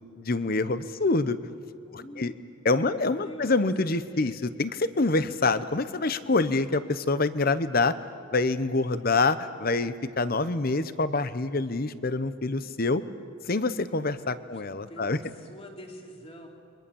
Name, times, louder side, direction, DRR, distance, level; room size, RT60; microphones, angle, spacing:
voice 1, 0.2-1.4 1.9-2.3 2.6-8.0 8.3-13.0 13.5-15.2, left 3 dB, 45° left, 13 dB, 0.9 m, -26 dB
voice 2, 1.9-2.4 2.8-3.5 4.1-4.2 8.8-9.2 14.4-14.6 14.9-16.5, equal, 30° left, 1 dB, 3.2 m, -46 dB
29.0 x 24.0 x 7.1 m, 2.5 s
head